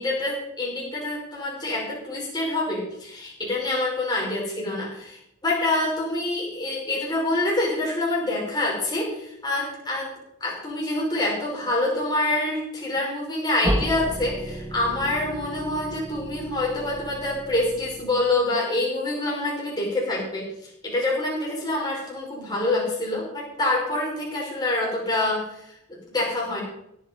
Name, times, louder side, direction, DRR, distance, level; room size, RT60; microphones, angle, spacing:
voice 1, 0.0-10.1 10.4-26.6, left 2 dB, 20° left, -4 dB, 5.7 m, -26 dB
sound 1, 13.6-18.4, right 1 dB, 10° right, 1.5 m, -32 dB
16.5 x 8.9 x 5.4 m, 0.79 s
head